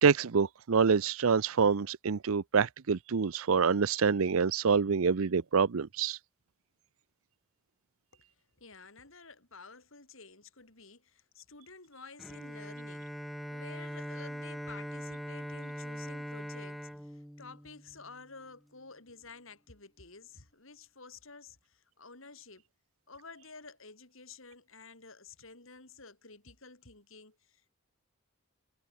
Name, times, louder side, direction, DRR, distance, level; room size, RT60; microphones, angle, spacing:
voice 1, 0.0-6.2, right 5 dB, 75° right, 0.6 m, -26 dB
voice 2, 8.6-13.1 13.5-22.6 23.1-27.7, left 4 dB, 70° left, 4.1 m, -52 dB
Bowed string instrument, 12.2-18.2, equal, ahead, 0.6 m, -41 dB
head